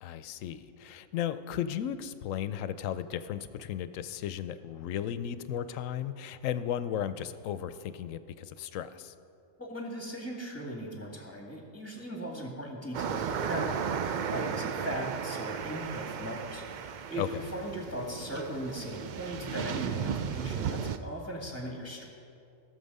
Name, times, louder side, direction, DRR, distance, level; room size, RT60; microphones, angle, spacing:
voice 1, 0.0-9.1 17.2-17.5, left 10 dB, 80° left, 13 dB, 0.9 m, -35 dB
voice 2, 9.6-22.0, equal, 10° left, -1 dB, 1.9 m, -38 dB
sound 1, 12.9-21.0, right 7 dB, 85° right, 0.4 m, -35 dB
17.0 x 7.0 x 5.4 m, 2.6 s
omnidirectional pair, 1.4 m